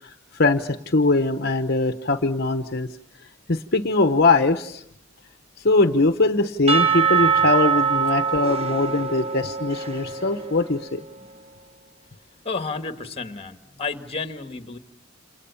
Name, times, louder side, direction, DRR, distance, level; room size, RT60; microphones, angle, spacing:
voice 1, 0.0-2.9 3.5-4.8 5.6-11.0, left 3 dB, 55° left, 8 dB, 1.1 m, -21 dB
Percussion / Church bell, 6.7-10.8, right 6 dB, 30° right, 1.4 m, -23 dB
voice 2, 12.4-14.8, left 4 dB, 30° left, 8 dB, 1.9 m, -31 dB
29.0 x 28.5 x 7.1 m, 0.73 s
head